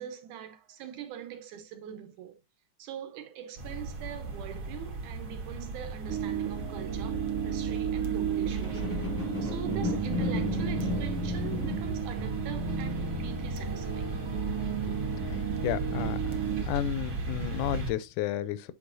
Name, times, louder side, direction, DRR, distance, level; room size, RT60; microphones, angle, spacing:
voice 1, 0.0-2.4 2.8-9.1 9.4-14.1, right 9 dB, 80° right, 2.5 m, -42 dB
sound 1, 3.6-17.9, right 3 dB, 50° right, 1.9 m, -36 dB
sound 2, 6.1-16.6, right 10 dB, 65° right, 1.3 m, -34 dB
sound 3, 8.5-15.9 16.5-16.6, left 5 dB, 10° left, 0.7 m, -37 dB
voice 2, 15.6-16.4 16.7-18.7, left 12 dB, 90° left, 2.1 m, -32 dB
8.5 x 4.9 x 2.6 m
omnidirectional pair, 3.5 m